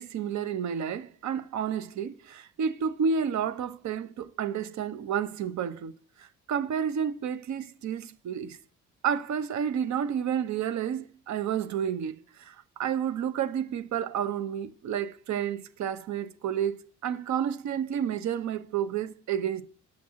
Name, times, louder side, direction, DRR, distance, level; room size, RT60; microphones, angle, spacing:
voice 1, 0.0-5.9 6.2-8.6 9.0-12.1 12.4-19.6, right 8 dB, 65° right, 0.8 m, -30 dB
7.5 x 6.0 x 3.7 m
cardioid pair, 90°, 30 cm